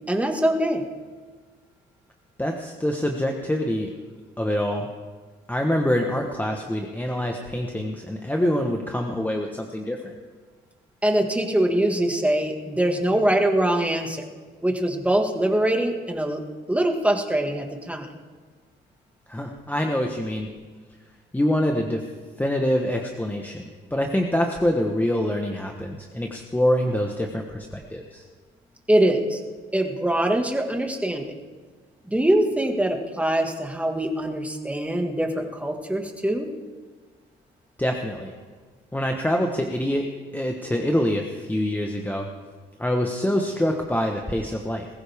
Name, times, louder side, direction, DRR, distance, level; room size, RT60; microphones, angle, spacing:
voice 1, 0.1-0.8 11.0-14.3 14.6-16.4 16.7-18.1 28.9-29.4 29.7-31.3 32.1-36.5, right 1 dB, 5° right, 3 dB, 1.8 m, -23 dB
voice 2, 2.4-3.9 4.4-4.9 5.5-10.1 19.3-20.5 21.3-22.0 22.4-28.2 37.8-38.3 38.9-40.1 40.3-42.3 42.8-44.9, equal, 10° left, 2 dB, 1.2 m, -25 dB
20.5 x 15.0 x 3.6 m, 1.5 s
cardioid pair, 90°, 20 cm